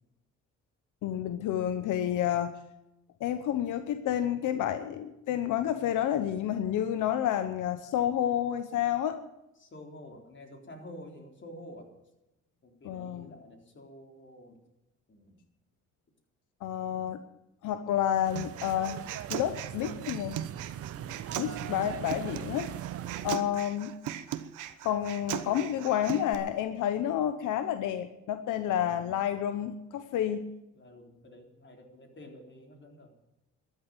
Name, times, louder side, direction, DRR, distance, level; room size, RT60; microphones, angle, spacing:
voice 1, 1.0-2.5 3.2-9.2 12.8-13.3 16.6-17.2 17.6-19.0 19.3-20.4 21.4-22.7 23.2-24.0 24.8-30.5, left 10 dB, 85° left, 10 dB, 1.0 m, -30 dB
voice 2, 4.4-4.8 9.6-11.9 12.6-14.6 15.1-15.4 21.0-21.4 23.0-23.4 30.7-33.1, left 1 dB, 40° left, 3 dB, 3.9 m, -50 dB
sound 1, 18.2-23.4, right 12 dB, 50° right, 0.5 m, -40 dB
Human voice, 18.4-26.3, right 12 dB, 85° right, 1.1 m, -39 dB
13.0 x 10.5 x 9.0 m, 0.91 s
cardioid pair, 90°, 30 cm